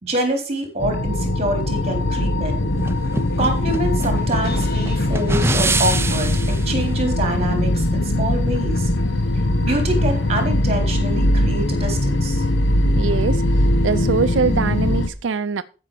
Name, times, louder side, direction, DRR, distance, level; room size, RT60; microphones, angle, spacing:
voice 1, 0.0-2.7 3.4-8.9 9.6-12.4, right 1 dB, 35° right, 3.8 m, -25 dB
sound 1, 0.8-15.1, left 1 dB, 85° left, 1.1 m, -21 dB
sound 2, 2.0-2.1 2.5-10.5, left 1 dB, 55° left, 2.3 m, -38 dB
sound 3, 2.8-6.7, right 2 dB, 15° right, 0.7 m, -25 dB
voice 2, 12.9-15.6, right 5 dB, 80° right, 0.5 m, -23 dB
15.0 x 6.1 x 4.9 m
head